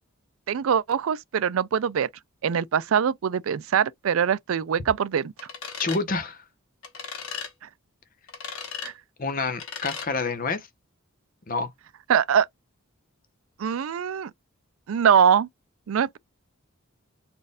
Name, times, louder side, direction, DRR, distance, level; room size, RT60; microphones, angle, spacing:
voice 1, 0.5-2.1 2.4-5.3 8.8-8.9 12.1-12.5 13.6-14.3 14.9-15.5 15.9-16.2, right 7 dB, 75° right, 0.4 m, -23 dB
sound 1, 5.4-6.0 6.8-7.5 8.3-8.9 9.6-10.1, left 6 dB, 80° left, 1.3 m, -36 dB
voice 2, 5.8-6.4 9.2-10.7 11.5-11.7, left 3 dB, 40° left, 0.9 m, -28 dB
4.3 x 2.5 x 3.5 m
head